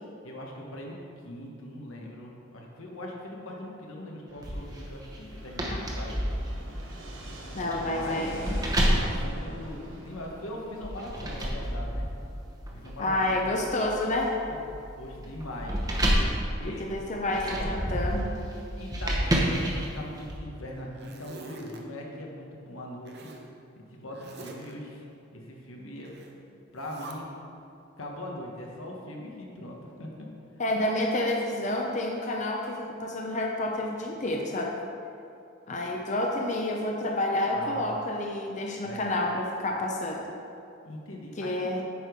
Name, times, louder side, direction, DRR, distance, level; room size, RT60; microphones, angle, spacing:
voice 1, 0.2-0.9 1.2-6.2 7.8-8.4 9.0-12.1 12.7-13.3 14.5-15.8 16.5-17.0 17.5-17.7 18.7-23.3 23.8-25.0 25.3-26.1 26.7-27.3 28.0-30.1 30.7-30.8 37.5-38.0 38.8-39.3 40.8-41.8, left 1 dB, 90° left, -1 dB, 1.3 m, -41 dB
Fixed-wing aircraft airplane, 4.3-20.0, right 1 dB, 70° right, 1.2 m, -48 dB
sound 1, 4.4-10.2 10.8-20.4, equal, 20° right, 0.9 m, -30 dB
voice 2, 7.5-8.5 13.0-14.4 16.8-18.3 30.6-34.7 35.7-40.2 41.4-41.8, left 1 dB, 35° left, 0 dB, 0.6 m, -29 dB
Zipper (clothing), 19.2-20.2 20.7-21.8 23.0-23.5 24.1-24.7 26.0-26.3 26.7-27.1, right 3 dB, 55° right, 0.8 m, -47 dB
8.7 x 4.9 x 5.1 m, 2.6 s
head